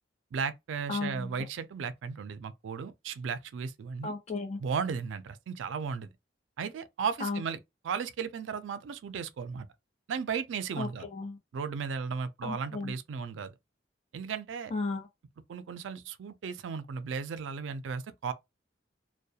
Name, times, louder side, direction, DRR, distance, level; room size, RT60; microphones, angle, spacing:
voice 1, 0.3-4.1 4.6-6.1 6.6-7.6 7.8-9.7 10.1-11.1 11.5-13.5 14.1-14.7 15.5-18.3, right 6 dB, 80° right, 0.4 m, -35 dB
voice 2, 0.9-1.3 4.0-4.6 7.2-7.4 10.8-11.4 12.4-12.9 14.7-15.1, left 3 dB, 40° left, 0.7 m, -34 dB
2.3 x 2.1 x 2.7 m
head